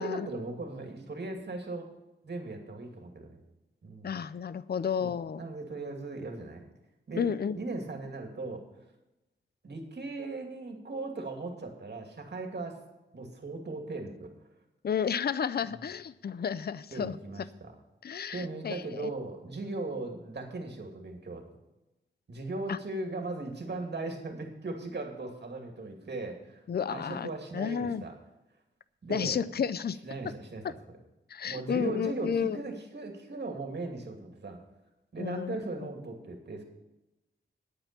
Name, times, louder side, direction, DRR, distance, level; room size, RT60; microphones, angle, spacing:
voice 1, 0.0-1.9 2.2-3.4 3.8-4.1 5.0-5.1 5.4-6.6 7.1-7.3 7.5-8.6 9.6-12.8 13.1-14.3 16.9-17.7 18.3-21.4 22.3-26.6 26.9-28.2 29.0-29.3 30.0-30.6 31.4-34.6 35.1-36.6, right 2 dB, 60° right, 3 dB, 2.5 m, -38 dB
voice 2, 4.0-5.4 7.2-7.6 14.8-17.2 18.0-19.1 22.7-22.8 26.7-27.3 27.5-28.0 29.1-30.0 31.3-32.6 35.2-35.6, left 7 dB, 55° left, 16 dB, 0.5 m, -31 dB
9.9 x 9.0 x 6.8 m, 0.99 s
wide cardioid pair, 100°, 20 cm